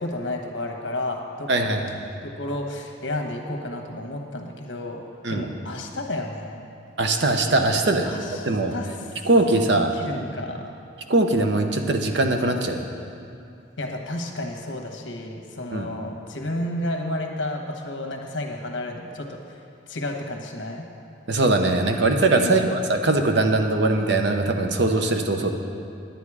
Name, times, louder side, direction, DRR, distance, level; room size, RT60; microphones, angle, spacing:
voice 1, 0.0-1.7 2.2-5.0 5.3-6.6 8.0-9.3 9.7-10.7 13.8-20.9 22.3-22.7, left 1 dB, 70° left, 2 dB, 1.2 m, -32 dB
voice 2, 1.5-1.9 5.2-5.4 7.0-8.2 8.5-8.7 9.3-9.9 11.1-12.9 15.7-15.9 21.3-25.5, right 2 dB, 65° right, 4 dB, 0.8 m, -21 dB
10.5 x 9.3 x 4.9 m, 2.5 s
head